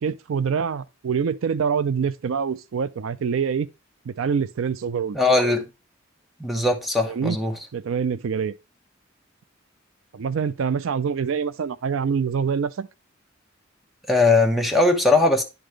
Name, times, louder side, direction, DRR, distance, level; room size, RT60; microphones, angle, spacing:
voice 1, 0.0-3.7 4.1-5.2 7.1-7.4 7.7-8.5 10.1-12.9, right 6 dB, 75° right, 0.4 m, -25 dB
voice 2, 5.1-5.6 6.4-7.6 14.1-15.4, left 2 dB, ahead, 1.1 m, -19 dB
10.5 x 3.9 x 3.2 m
head